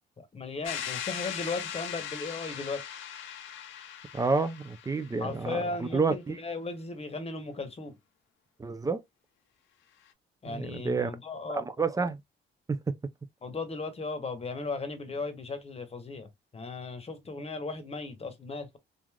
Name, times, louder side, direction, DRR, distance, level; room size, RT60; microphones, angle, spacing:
voice 1, 0.2-2.8 5.2-7.9 10.4-11.6 13.4-18.8, left 3 dB, 30° left, 1.0 m, -36 dB
sound 1, 0.6-5.4, left 9 dB, 75° left, 0.6 m, -39 dB
voice 2, 4.1-6.4 8.6-9.0 10.5-11.1 11.5-12.2 12.7-12.9, right 4 dB, 15° right, 0.4 m, -29 dB
3.3 x 2.5 x 2.3 m
cardioid pair, 90°, 20 cm